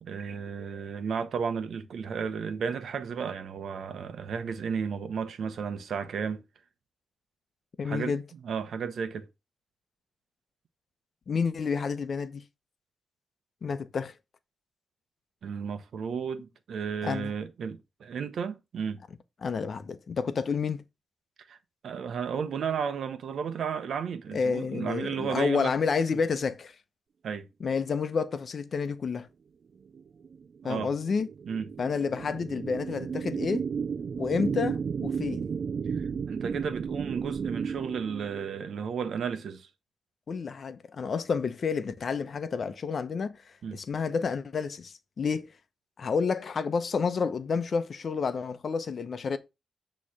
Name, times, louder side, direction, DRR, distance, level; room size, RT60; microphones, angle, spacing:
voice 1, 0.0-6.4 7.8-8.2 8.4-9.3 15.4-19.0 21.5-21.6 21.8-25.7 27.2-27.5 30.6-30.9 31.5-31.7 35.9-39.7 43.6-43.8, right 6 dB, 80° right, 0.9 m, -33 dB
voice 2, 7.8-8.2 11.3-12.4 13.6-14.1 17.0-17.3 19.4-20.8 24.3-26.7 27.6-29.3 30.6-31.3 31.8-33.6 34.2-35.4 40.3-43.4 43.7-45.5 46.0-49.4, left 5 dB, 60° left, 0.8 m, -29 dB
sound 1, 29.9-38.7, right 6 dB, 65° right, 0.4 m, -33 dB
8.4 x 3.2 x 5.7 m
cardioid pair, 75°, 0 cm